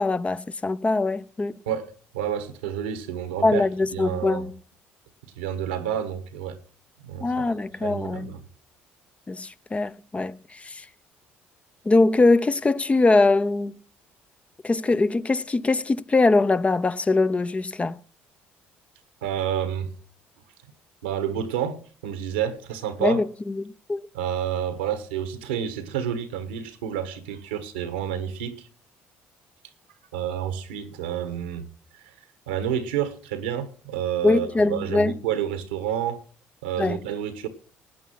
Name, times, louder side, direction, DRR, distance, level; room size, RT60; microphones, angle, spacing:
voice 1, 0.0-1.6 3.4-4.5 7.2-8.3 9.3-10.8 11.8-13.8 14.6-18.0 23.0-24.0 34.2-35.1 36.8-37.0, left 3 dB, 25° left, 0.7 m, -22 dB
voice 2, 1.6-4.4 5.2-6.6 7.0-7.3 7.8-8.4 19.2-19.9 21.0-23.2 24.1-28.7 30.1-31.7 32.5-36.2 36.6-37.5, right 9 dB, 90° right, 1.5 m, -29 dB
17.5 x 9.3 x 5.7 m
hypercardioid pair, 60°, 5 cm